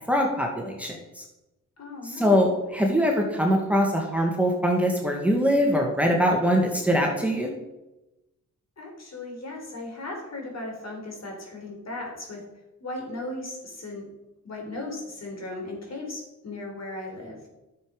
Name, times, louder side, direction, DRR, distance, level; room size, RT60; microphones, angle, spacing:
voice 1, 0.1-1.2 2.0-7.5, equal, 5° right, 0 dB, 2.0 m, -23 dB
voice 2, 1.8-2.6 8.8-12.4 12.8-14.1 14.4-17.4, left 2 dB, 50° left, 1 dB, 3.9 m, -37 dB
10.5 x 6.9 x 5.1 m, 0.98 s
cardioid pair, 70°, 34 cm